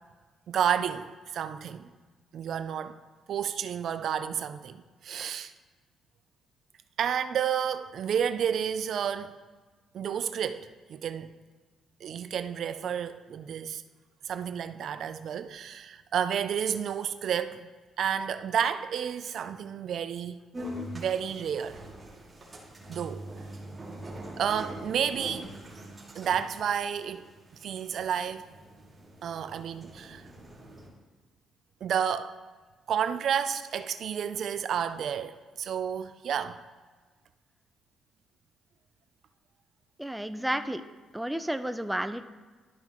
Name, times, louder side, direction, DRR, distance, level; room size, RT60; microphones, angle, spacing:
voice 1, 0.5-1.9 2.3-3.0 3.3-5.5 7.0-9.4 9.9-11.4 12.0-13.8 14.3-17.7 18.0-20.4 20.9-21.8 22.9-23.2 24.4-25.5 26.1-27.3 27.6-28.5 29.2-30.2 31.8-32.3 32.9-36.6, right 8 dB, 65° right, 0.4 m, -31 dB
sound 1, 20.5-30.9, right 1 dB, 30° right, 2.3 m, -43 dB
voice 2, 40.0-40.8 41.1-42.2, right 1 dB, 5° right, 0.4 m, -31 dB
12.0 x 5.6 x 3.0 m
cardioid pair, 90°, 0 cm